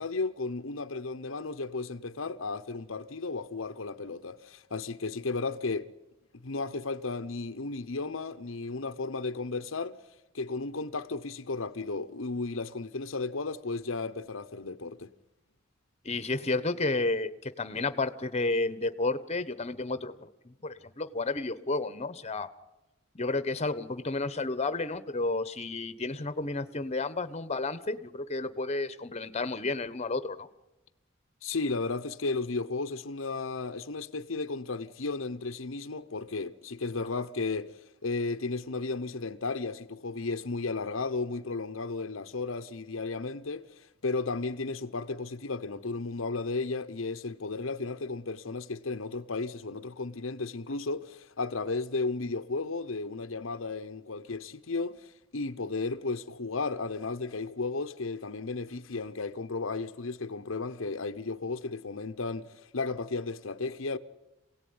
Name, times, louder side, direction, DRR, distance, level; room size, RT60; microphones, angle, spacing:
voice 1, 0.0-5.9 6.4-10.0 10.3-15.1 31.4-64.0, left 3 dB, 75° left, 1.0 m, -34 dB
voice 2, 16.0-22.5 23.1-30.5, left 3 dB, 35° left, 1.2 m, -31 dB
27.5 x 18.0 x 9.7 m
head